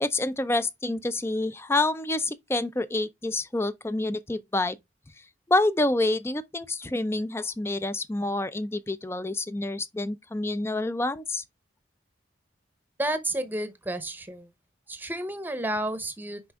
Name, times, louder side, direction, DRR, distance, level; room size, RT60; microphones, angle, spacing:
voice 1, 0.0-4.8 5.5-11.4, left 2 dB, 15° left, 0.4 m, -27 dB
voice 2, 13.0-14.5 14.9-16.4, right 1 dB, 10° right, 0.8 m, -31 dB
5.9 x 5.2 x 3.4 m
head